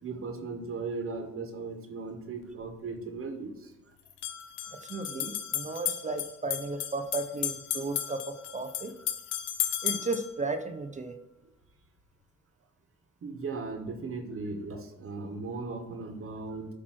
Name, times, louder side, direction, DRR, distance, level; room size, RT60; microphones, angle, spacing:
voice 1, 0.0-3.5 13.2-16.7, right 4 dB, 45° right, 5 dB, 1.3 m, -37 dB
sound 1, 2.4-2.5 4.1-10.3, left 11 dB, 80° left, 0.8 m, -34 dB
voice 2, 4.7-9.0 9.8-11.2, right 3 dB, 25° right, 9 dB, 0.6 m, -34 dB
8.6 x 3.0 x 6.1 m, 0.95 s
cardioid pair, 90°, 30 cm